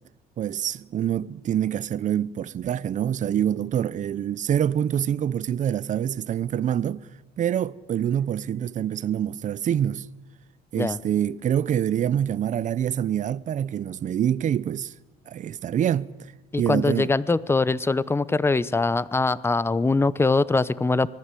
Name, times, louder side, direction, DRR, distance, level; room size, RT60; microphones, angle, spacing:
voice 1, 0.4-7.1 7.4-10.1 10.7-14.9 15.3-16.3 16.6-17.1, right 10 dB, 50° right, 0.8 m, -26 dB
voice 2, 16.5-21.1, left 3 dB, 15° left, 0.8 m, -22 dB
25.0 x 19.5 x 8.5 m
cardioid pair, 110°, 17 cm